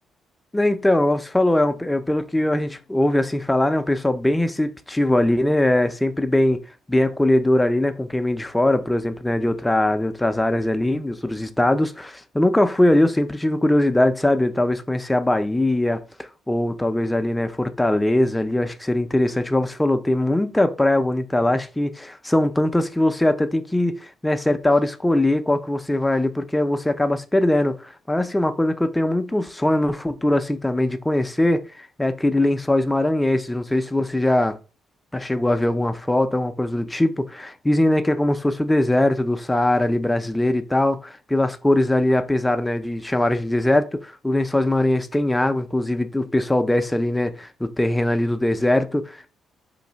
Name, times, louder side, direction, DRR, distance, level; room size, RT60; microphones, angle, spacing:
voice 1, 0.5-6.6 6.9-31.7 32.0-34.6 35.1-49.3, left 1 dB, 10° left, 0.4 m, -21 dB
3.1 x 2.6 x 3.9 m
cardioid pair, 90°, 0 cm